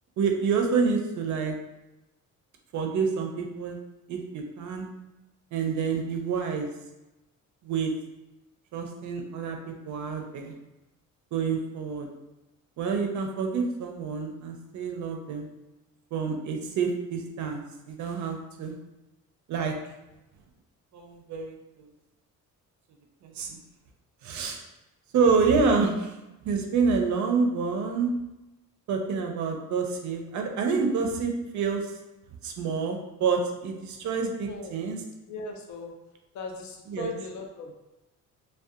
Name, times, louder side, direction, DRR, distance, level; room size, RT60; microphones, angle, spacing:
voice 1, 0.2-1.5 2.7-3.8 4.1-4.9 5.5-6.7 7.6-7.9 8.7-10.5 11.3-12.1 12.8-15.5 16.1-18.7 19.5-19.7 20.9-21.9 23.2-23.6 24.2-24.6 25.1-26.1 26.4-28.1 28.9-31.9 32.4-35.0 36.9-37.1, right 5 dB, 65° right, 3 dB, 0.5 m, -28 dB
voice 2, 35.3-35.9 36.3-37.7, left 3 dB, 60° left, 3 dB, 0.5 m, -38 dB
2.6 x 2.2 x 2.3 m, 1.0 s
cardioid pair, 130°, 32 cm